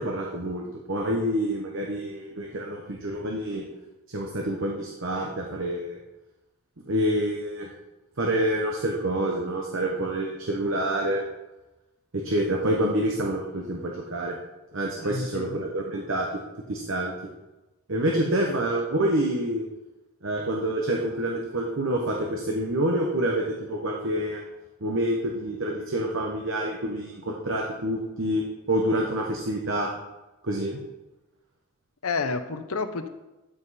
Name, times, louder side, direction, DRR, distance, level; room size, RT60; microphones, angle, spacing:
voice 1, 0.0-3.6 4.1-6.0 6.8-7.7 8.2-11.2 12.1-14.4 14.7-16.3 16.7-17.1 17.9-19.6 20.2-24.4 24.8-29.9 30.4-30.8, right 1 dB, 60° right, 0 dB, 1.0 m, -27 dB
voice 2, 15.0-15.6 18.2-18.3 32.0-33.1, left 4 dB, 75° left, 10 dB, 0.7 m, -30 dB
12.5 x 5.3 x 4.2 m, 1.1 s
head